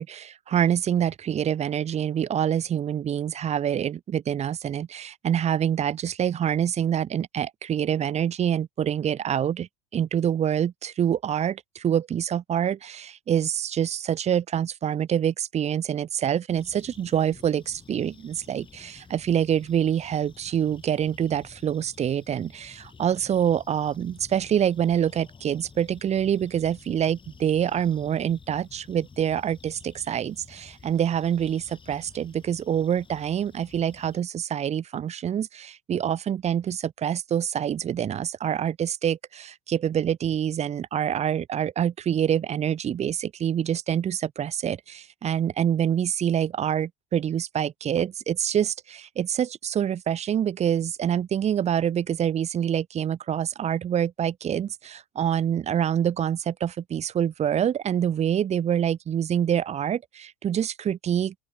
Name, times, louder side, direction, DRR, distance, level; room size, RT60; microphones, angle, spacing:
voice 1, 0.0-61.3, right 9 dB, 35° right, 0.9 m, -26 dB
sound 1, 16.5-34.2, left 5 dB, 25° left, 6.4 m, -51 dB
open air
hypercardioid pair, 75°, 20 cm